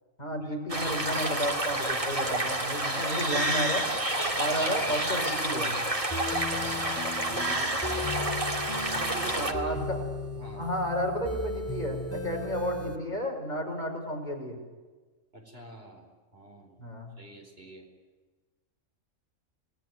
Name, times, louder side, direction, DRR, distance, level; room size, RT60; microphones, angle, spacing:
voice 1, 0.2-3.8 4.3-5.7 9.4-10.1 10.5-14.6 16.8-17.1, equal, 35° left, 1 dB, 6.0 m, -32 dB
sound 1, 0.7-9.5, right 1 dB, 25° right, 2.3 m, -29 dB
sound 2, 6.1-13.0, left 2 dB, 10° left, 2.5 m, -36 dB
voice 2, 6.5-8.3 8.9-9.8 10.4-10.6 15.3-17.9, right 1 dB, 45° right, 2 dB, 4.9 m, -45 dB
28.0 x 20.0 x 9.4 m, 1.4 s
omnidirectional pair, 1.4 m